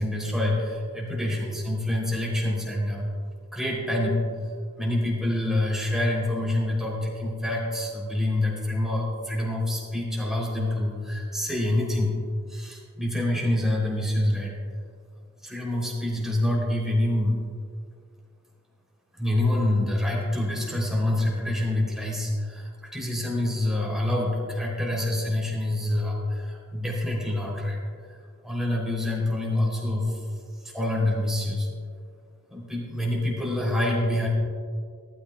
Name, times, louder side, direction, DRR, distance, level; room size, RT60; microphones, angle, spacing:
voice 1, 0.0-3.1 3.5-4.3 4.8-12.1 12.5-14.5 15.4-17.4 19.1-28.2 28.4-30.2 30.6-31.7 32.5-34.3, left 1 dB, ahead, -4 dB, 3.3 m, -26 dB
19.0 x 13.5 x 2.4 m, 2.1 s
head